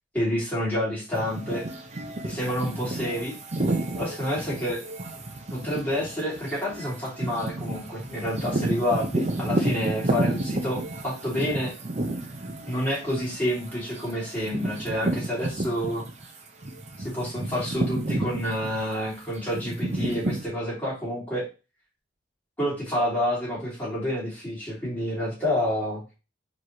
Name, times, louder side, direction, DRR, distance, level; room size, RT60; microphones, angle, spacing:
voice 1, 0.1-1.7 2.2-3.3 3.9-4.8 5.5-11.7 12.7-16.0 17.0-21.5 22.6-26.0, equal, 10° left, -7 dB, 2.5 m, -28 dB
sound 1, 1.1-16.3 16.6-20.4, right 2 dB, 35° right, 0.7 m, -31 dB
4.6 x 3.1 x 2.8 m, 0.30 s
head